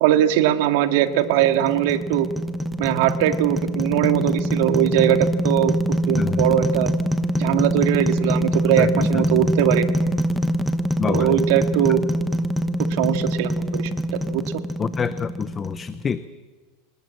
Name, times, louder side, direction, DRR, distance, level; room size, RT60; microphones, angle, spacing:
voice 1, 0.0-2.3 2.8-6.9 7.4-10.0 11.1-12.0 12.9-14.4, right 11 dB, 60° right, 8 dB, 1.9 m, -21 dB
sound 1, 0.9-16.1, equal, ahead, 1.1 m, -24 dB
voice 2, 11.0-11.4 14.8-16.2, left 6 dB, 20° left, 13 dB, 0.7 m, -26 dB
26.0 x 20.0 x 7.7 m, 1.4 s
supercardioid pair, 155°, 0 cm